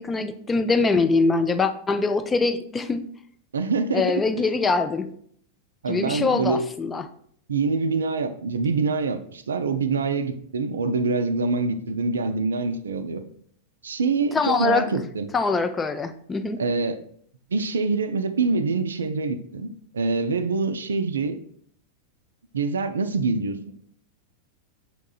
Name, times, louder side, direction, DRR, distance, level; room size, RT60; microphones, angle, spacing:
voice 1, 0.0-3.0 3.9-5.1 5.9-7.0 14.3-14.8 15.3-16.6, left 4 dB, 15° left, 9 dB, 0.3 m, -23 dB
voice 2, 3.5-4.3 5.8-6.7 7.5-13.2 13.8-15.3 16.6-17.0 17.5-21.4 22.5-23.7, right 4 dB, 70° right, 10 dB, 0.3 m, -25 dB
5.8 x 3.6 x 2.3 m, 0.63 s
figure-of-eight pair, 90°, 0 cm